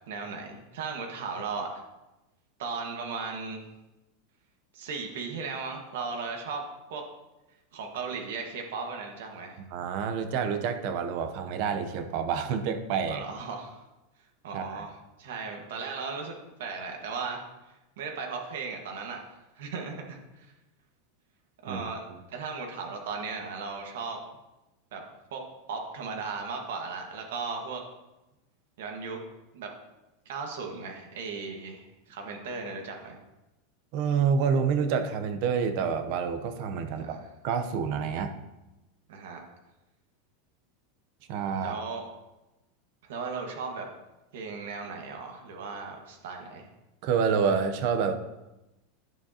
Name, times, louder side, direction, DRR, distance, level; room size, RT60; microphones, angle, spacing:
voice 1, 0.1-1.8 2.6-3.6 4.7-6.6 6.9-7.0 7.7-9.6 13.1-13.8 14.4-17.4 18.0-19.2 19.6-20.5 21.6-24.2 24.9-25.0 25.3-25.4 25.7-27.8 28.8-29.2 29.5-29.7 30.2-33.2 36.8-37.2 39.1-39.4 41.5-42.1 43.0-43.9 44.3-46.7, right 4 dB, 80° right, 2 dB, 1.5 m, -36 dB
voice 2, 9.7-13.2 14.5-14.8 21.7-21.8 33.9-37.2 37.4-38.3 41.3-41.8 47.0-48.2, right 6 dB, 50° right, 8 dB, 0.7 m, -28 dB
10.5 x 7.3 x 2.9 m, 1.0 s
supercardioid pair, 160°, 0 cm